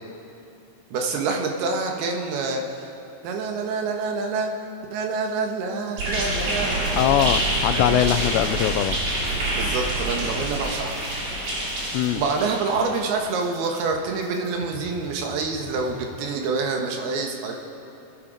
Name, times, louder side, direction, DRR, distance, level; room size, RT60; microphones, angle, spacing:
voice 1, 0.9-2.9 3.2-4.5 4.9-7.3 7.7-8.4 9.5-11.0 12.1-17.6, right 4 dB, 70° right, 2 dB, 3.1 m, -27 dB
sound 1, 6.0-13.0, right 1 dB, 45° right, 3.8 m, -26 dB
voice 2, 7.0-9.0 11.9-12.2, left 12 dB, 90° left, 12 dB, 2.8 m, -22 dB
sound 2, 9.0-16.3, left 4 dB, 30° left, 3.8 m, -45 dB
27.5 x 9.9 x 5.1 m, 2.7 s
omnidirectional pair, 4.9 m